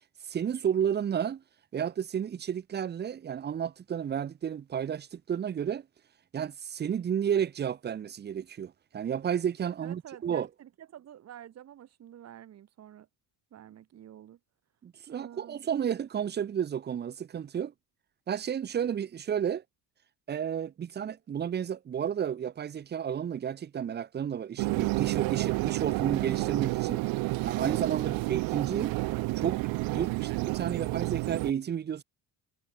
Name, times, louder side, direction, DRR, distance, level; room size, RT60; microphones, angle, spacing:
voice 1, 0.3-1.4 1.7-5.8 6.3-10.5 14.8-17.7 18.3-19.6 20.3-27.0 27.4-28.9 29.4-29.6 29.9-32.0, right 8 dB, 25° right, 1.1 m, -32 dB
voice 2, 9.8-13.1 13.5-14.4 15.1-15.6 28.0-28.3 30.0-30.3, right 11 dB, 40° right, 6.0 m, -48 dB
sound 1, 24.6-31.5, right 22 dB, 70° right, 0.7 m, -30 dB
cardioid pair, 165°, 37 cm